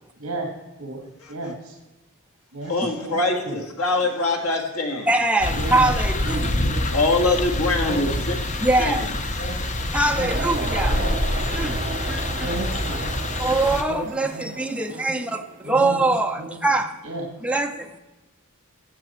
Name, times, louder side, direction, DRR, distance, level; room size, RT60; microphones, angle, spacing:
voice 1, 1.3-1.7 2.5-3.6 5.5-5.9 6.2-6.8 7.8-8.4 9.4-10.7 11.0-11.1 12.4-13.5 13.9-14.0 14.3-14.4 15.6-16.0 16.4-16.5 17.0-17.2, right 2 dB, 65° right, 1 dB, 1.8 m, -33 dB
voice 2, 2.7-5.1 6.9-8.4 8.8-9.1 9.4-9.8, left 2 dB, 70° left, 2 dB, 1.9 m, -24 dB
voice 3, 5.1-6.6 8.6-9.1 9.9-11.0 11.5-12.6 13.4-17.0 17.4-18.0, right 2 dB, 5° right, 4 dB, 0.7 m, -23 dB
sound 1, 5.4-13.8, left 1 dB, 35° left, 0.8 m, -26 dB
sound 2, 10.3-15.8, right 4 dB, 35° right, 0.8 m, -35 dB
17.0 x 7.8 x 4.4 m, 1.1 s
head